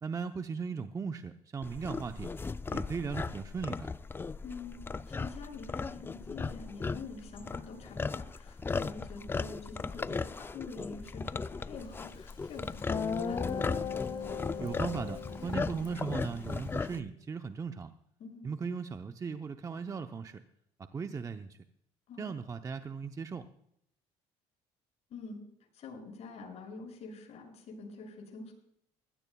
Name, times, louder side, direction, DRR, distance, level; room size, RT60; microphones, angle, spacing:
voice 1, 0.0-2.3 2.7-3.9 14.6-17.9 18.4-20.4 20.9-21.6 22.2-23.5, right 5 dB, 25° right, 7 dB, 0.7 m, -37 dB
sound 1, 1.6-17.0, left 4 dB, 15° left, 0.4 m, -37 dB
voice 2, 4.4-13.5 18.2-18.4 22.1-22.4 25.1-25.4 25.7-28.5, left 4 dB, 55° left, 0 dB, 6.7 m, -46 dB
Guitar, 12.3-12.4 12.9-17.0, left 6 dB, 40° left, 1.8 m, -37 dB
20.5 x 16.0 x 2.3 m, 0.73 s
cardioid pair, 105°, 13 cm